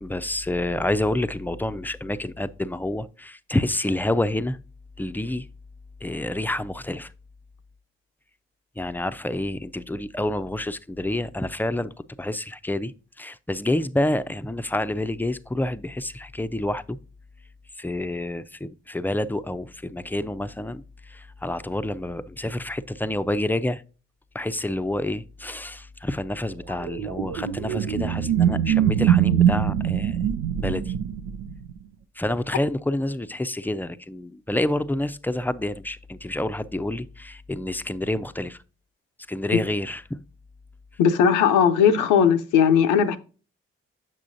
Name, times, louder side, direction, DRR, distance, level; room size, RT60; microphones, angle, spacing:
voice 1, 0.0-4.6 5.0-5.5 6.0-7.1 8.8-11.9 12.2-17.0 17.8-23.8 24.3-30.2 30.6-30.9 32.2-38.6 39.3-40.2, left 1 dB, 5° left, 0.5 m, -28 dB
sound 1, 26.7-31.7, right 9 dB, 90° right, 0.5 m, -23 dB
voice 2, 41.0-43.2, left 7 dB, 85° left, 0.6 m, -18 dB
7.4 x 6.0 x 2.6 m
hypercardioid pair, 45°, 29 cm